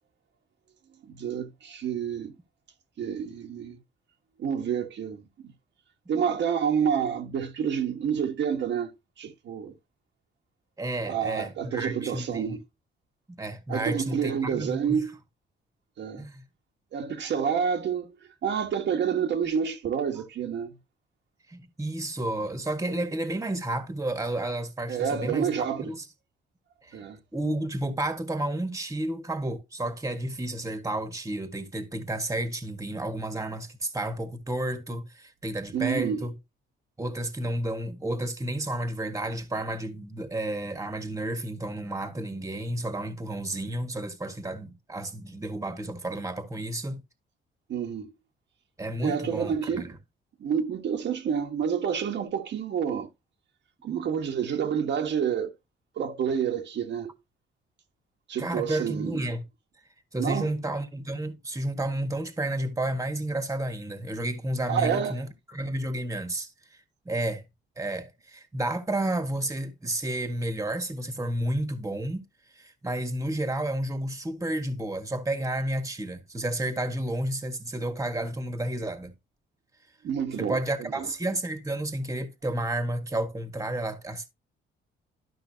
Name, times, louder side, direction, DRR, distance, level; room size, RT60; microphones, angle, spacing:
voice 1, 1.1-2.3 3.0-3.8 4.4-5.5 6.1-9.7 11.1-12.6 13.7-15.1 16.0-16.2 16.9-18.1 18.4-20.8 24.9-25.9 26.9-27.2 35.7-36.2 47.7-48.1 49.0-49.9 50.4-53.1 53.8-55.5 55.9-57.2 58.3-59.2 60.2-60.5 64.7-65.2 80.0-81.1, right 7 dB, 65° right, 1.4 m, -28 dB
voice 2, 10.8-12.6 13.4-15.0 16.2-16.4 21.5-25.5 25.8-26.0 26.8-27.0 27.3-36.3 37.0-47.0 48.8-49.9 58.4-59.4 60.1-67.4 67.8-72.2 72.5-79.1 80.4-84.3, right 1 dB, 15° right, 1.7 m, -31 dB
12.0 x 5.6 x 2.8 m
cardioid pair, 90°, 20 cm